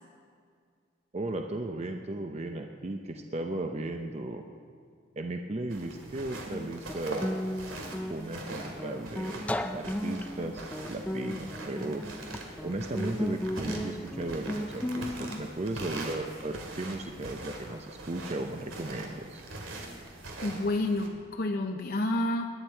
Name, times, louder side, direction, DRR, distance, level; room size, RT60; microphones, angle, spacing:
voice 1, 1.1-4.4 5.2-7.4 8.1-9.4 9.7-12.1 12.6-19.4, right 2 dB, 35° right, 4 dB, 0.6 m, -35 dB
sound 1, 5.7-21.1, right 2 dB, 90° right, 2.2 m, -43 dB
Guitar, 6.0-15.4, equal, 5° left, 0.4 m, -36 dB
voice 2, 20.4-22.5, left 1 dB, 50° left, 4 dB, 0.7 m, -29 dB
21.5 x 10.5 x 4.5 m, 2.2 s
head